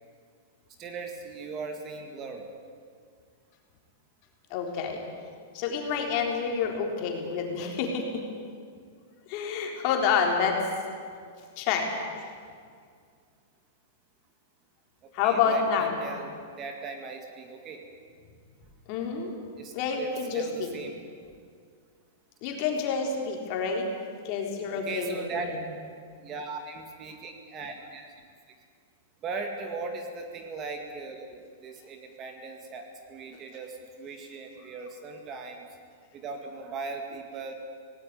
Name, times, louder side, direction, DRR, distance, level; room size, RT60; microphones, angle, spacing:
voice 1, 0.8-2.5 15.0-17.8 19.6-21.0 24.7-25.5 26.2-28.6 29.2-35.7 36.1-37.5, right 4 dB, 25° right, 4 dB, 2.0 m, -39 dB
voice 2, 4.5-5.0 5.5-8.2 9.3-10.6 11.6-11.9 15.1-16.0 18.9-19.3 19.7-20.7 22.4-23.9 24.2-25.4, left 6 dB, 40° left, 2 dB, 3.7 m, -28 dB
18.0 x 17.5 x 9.5 m, 2.1 s
supercardioid pair, 160°, 0 cm